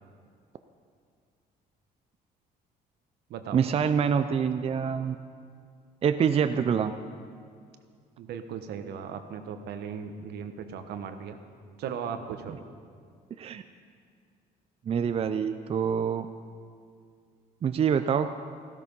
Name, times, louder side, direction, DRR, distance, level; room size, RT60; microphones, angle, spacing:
voice 1, 3.5-5.2 6.0-6.9 13.4-13.6 14.9-16.3 17.6-18.3, right 7 dB, 35° right, 9 dB, 0.5 m, -25 dB
voice 2, 8.2-11.4 11.8-12.6, right 7 dB, 75° right, 8 dB, 1.2 m, -37 dB
15.0 x 12.5 x 5.5 m, 2.2 s
cardioid pair, 110°, 17 cm